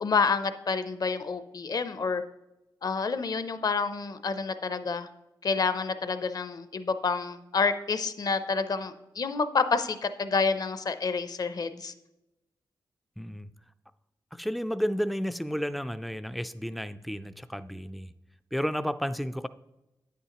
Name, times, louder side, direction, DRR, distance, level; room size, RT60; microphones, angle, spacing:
voice 1, 0.0-2.2 2.8-5.1 5.4-11.9, left 4 dB, 50° left, 11 dB, 0.5 m, -28 dB
voice 2, 13.2-13.5 14.4-18.1 18.5-19.5, equal, ahead, 13 dB, 0.3 m, -32 dB
9.4 x 8.3 x 2.9 m, 0.94 s
wide cardioid pair, 105°, 9 cm